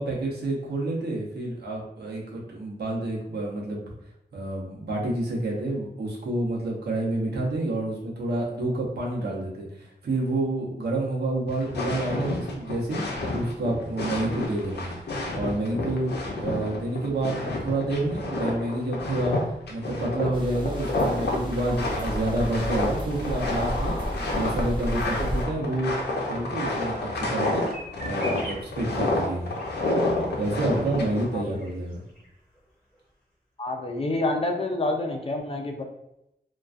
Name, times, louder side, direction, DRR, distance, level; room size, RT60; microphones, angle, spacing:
voice 1, 0.0-3.9 4.3-14.9 15.3-19.4 19.7-24.0 24.3-25.9 26.3-27.7 28.0-29.5 30.4-32.0, right 2 dB, 80° right, -3 dB, 0.7 m, -29 dB
sound 1, 11.5-31.3, left 2 dB, 85° left, 0.5 m, -29 dB
sound 2, 20.3-25.4, equal, 30° right, 0.6 m, -32 dB
sound 3, 27.1-32.3 32.6-32.7 32.9-33.0, right 1 dB, 10° left, 0.9 m, -44 dB
voice 2, 33.6-35.7, left 2 dB, 35° left, 3 dB, 0.4 m, -28 dB
2.3 x 2.2 x 2.5 m, 0.83 s
wide cardioid pair, 90°, 17 cm